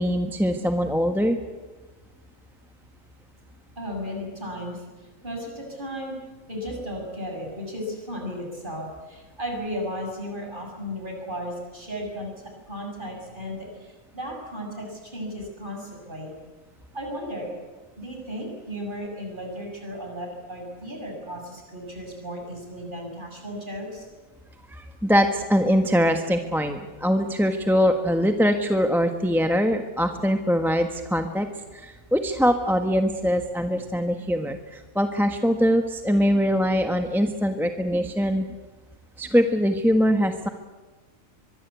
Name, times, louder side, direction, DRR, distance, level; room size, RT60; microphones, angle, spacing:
voice 1, 0.0-1.4 24.7-31.5 31.7-38.4 39.2-40.5, equal, ahead, 5 dB, 1.3 m, -22 dB
voice 2, 3.8-4.8 5.2-6.1 6.5-12.3 12.7-16.3 16.9-17.5 18.0-24.0, equal, 35° right, 2 dB, 7.0 m, -35 dB
23.5 x 23.0 x 8.3 m, 1.2 s
omnidirectional pair, 1.4 m